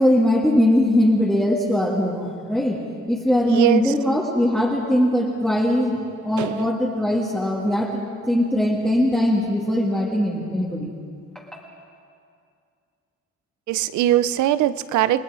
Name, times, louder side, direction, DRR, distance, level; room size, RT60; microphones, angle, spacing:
voice 1, 0.0-2.8 3.1-10.9 11.4-11.6, left 1 dB, ahead, -5 dB, 1.9 m, -21 dB
voice 2, 3.5-3.8 6.4-6.6 13.7-15.2, right 13 dB, 80° right, 14 dB, 0.8 m, -20 dB
29.0 x 20.0 x 4.9 m, 2.3 s
cardioid pair, 155°, 29 cm